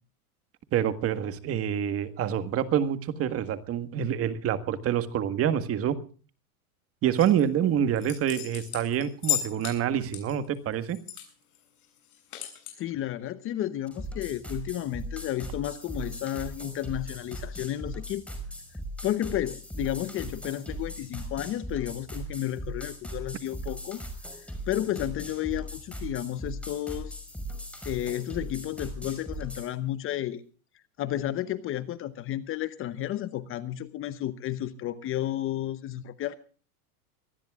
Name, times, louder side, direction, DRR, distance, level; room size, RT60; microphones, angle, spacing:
voice 1, 0.7-6.0 7.0-11.0, right 9 dB, 30° right, 11 dB, 1.7 m, -27 dB
sound 1, 7.2-7.4 7.9-9.8 10.1-11.3 11.5-11.6 12.0-12.7, left 13 dB, 75° left, 7.8 m, -34 dB
voice 2, 12.8-18.2 19.0-24.0 24.7-27.2 27.8-30.4 31.0-36.4, left 12 dB, 30° left, 14 dB, 0.9 m, -32 dB
sound 2, 13.9-29.7, equal, 5° left, 5.3 m, -39 dB
24.5 x 19.5 x 2.4 m, 0.39 s
supercardioid pair, 130°, 45 cm